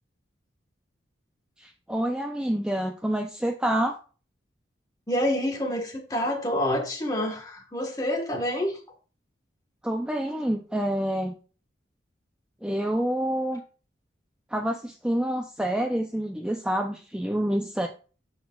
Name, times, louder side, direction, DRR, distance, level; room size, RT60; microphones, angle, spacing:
voice 1, 1.6-4.0 9.8-11.4 12.6-13.6 14.5-17.9, right 1 dB, 5° right, 0.3 m, -27 dB
voice 2, 5.1-8.8, left 1 dB, 20° left, 1.2 m, -27 dB
11.5 x 4.3 x 2.3 m
head